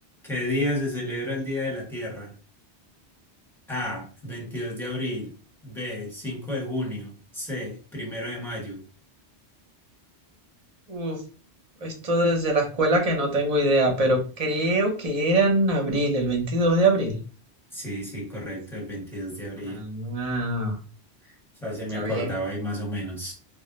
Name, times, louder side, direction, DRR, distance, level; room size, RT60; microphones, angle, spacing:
voice 1, 0.2-2.3 3.7-5.3 5.6-8.8 17.7-19.8 21.2-21.3 21.6-23.3, left 1 dB, ahead, -3 dB, 1.0 m, -31 dB
voice 2, 10.9-11.2 11.8-17.2 19.7-20.7 21.9-22.3, right 1 dB, 40° right, 2 dB, 0.7 m, -23 dB
2.5 x 2.1 x 3.8 m, 0.37 s
omnidirectional pair, 1.1 m